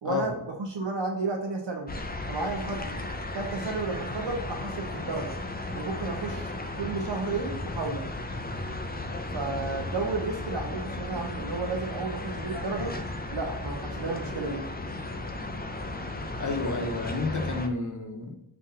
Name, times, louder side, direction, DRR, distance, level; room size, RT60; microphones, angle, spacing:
voice 1, 0.0-1.9 2.3-2.9 3.3-5.3 5.7-8.0 9.3-12.9 13.3-14.6, right 3 dB, 65° right, 0 dB, 0.8 m, -32 dB
sound 1, 1.9-17.7, left 2 dB, 20° left, 0.5 m, -35 dB
voice 2, 16.4-18.3, left 3 dB, 40° left, 3 dB, 0.9 m, -30 dB
5.7 x 2.5 x 2.8 m, 0.82 s
wide cardioid pair, 55°, 46 cm